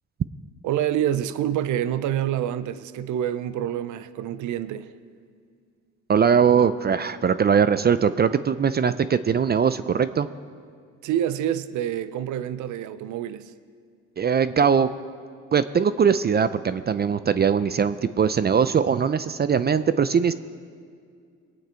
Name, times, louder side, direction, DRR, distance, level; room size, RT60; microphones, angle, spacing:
voice 1, 0.6-4.9 11.0-13.5, right 11 dB, 75° right, 0.6 m, -27 dB
voice 2, 6.1-10.3 14.2-14.9 15.5-20.3, right 7 dB, 35° right, 0.4 m, -21 dB
21.5 x 9.1 x 4.5 m
cardioid pair, 90°, 30 cm